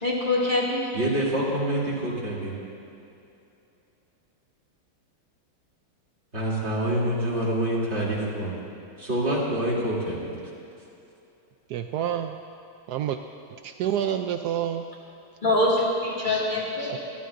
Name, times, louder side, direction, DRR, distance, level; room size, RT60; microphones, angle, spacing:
voice 1, 0.0-0.9 15.4-17.0, left 2 dB, 25° left, -5 dB, 2.2 m, -24 dB
voice 2, 0.9-2.5 6.3-8.5 9.0-10.3, right 1 dB, 30° right, -7 dB, 3.2 m, -26 dB
voice 3, 11.7-12.4 12.9-13.2 13.5-14.9 16.9-17.0, right 10 dB, 80° right, 6 dB, 0.8 m, -28 dB
27.0 x 13.0 x 2.6 m, 2.8 s
omnidirectional pair, 2.2 m